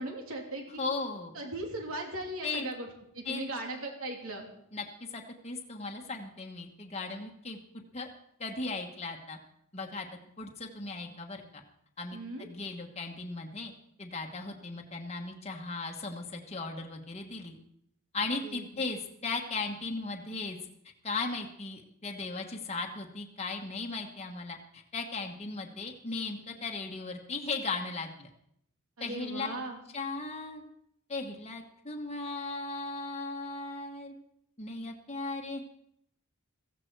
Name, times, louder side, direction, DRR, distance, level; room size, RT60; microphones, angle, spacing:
voice 1, 0.0-0.8 1.3-2.9 3.1-4.5 12.1-12.5 18.4-18.7 29.0-29.8, right 2 dB, 75° right, 1 dB, 3.0 m, -38 dB
voice 2, 0.8-1.3 2.4-2.7 3.2-3.4 4.7-4.8 5.1-7.6 7.9-8.1 8.4-9.4 9.7-10.1 10.4-11.6 12.0-13.7 14.0-17.6 18.1-20.6 21.0-28.3 29.0-29.5 29.9-30.6 31.1-34.1 34.6-35.6, left 3 dB, 30° left, 2 dB, 1.3 m, -37 dB
16.0 x 15.0 x 4.6 m, 0.73 s
head